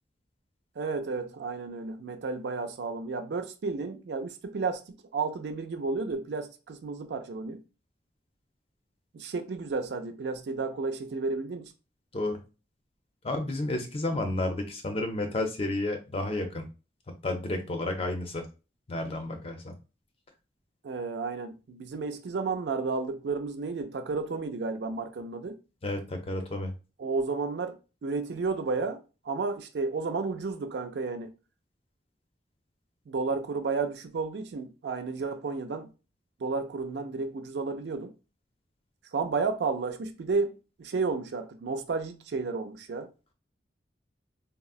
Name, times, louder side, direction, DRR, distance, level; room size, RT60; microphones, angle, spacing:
voice 1, 0.8-4.8 5.1-7.6 9.1-11.7 20.8-25.5 27.0-27.8 28.0-29.0 29.3-31.3 33.1-35.9 36.4-38.1 39.1-43.1, right 4 dB, 70° right, 0.4 m, -32 dB
voice 2, 13.2-16.7 17.2-18.5 18.9-19.7 25.8-26.7, left 2 dB, 35° left, 0.5 m, -31 dB
3.6 x 2.0 x 2.3 m
head